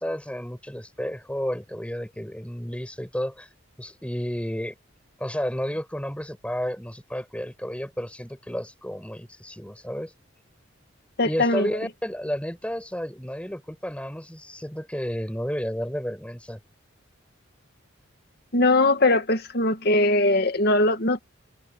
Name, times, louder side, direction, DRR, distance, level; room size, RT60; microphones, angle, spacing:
voice 1, 0.0-3.5 3.8-4.7 5.2-10.1 11.2-16.6, equal, 5° left, 7.8 m, -32 dB
voice 2, 11.2-11.7 18.5-21.2, left 2 dB, 50° left, 2.2 m, -21 dB
head